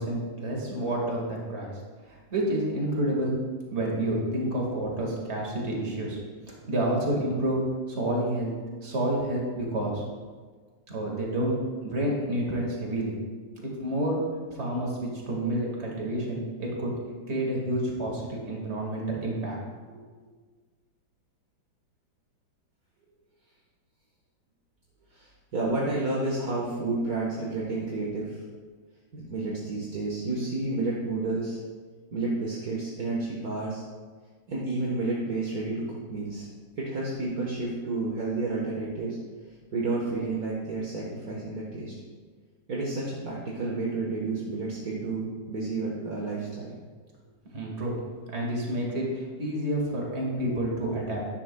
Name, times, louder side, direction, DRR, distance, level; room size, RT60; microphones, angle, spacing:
voice 1, 0.0-1.7 2.1-3.4 3.7-6.2 6.5-7.6 7.9-8.5 8.8-10.0 10.9-11.6 11.8-13.1 13.6-14.2 14.5-16.9 17.3-19.6 19.9-20.0 47.5-48.0 48.3-51.2, right 1 dB, 40° right, -2 dB, 2.1 m, -29 dB
voice 2, 25.1-28.4 29.1-31.6 32.1-33.8 34.5-36.5 36.8-39.2 39.7-41.9 42.7-46.7, right 3 dB, 55° right, -4 dB, 1.7 m, -30 dB
12.5 x 10.0 x 2.3 m, 1.5 s
omnidirectional pair, 1.9 m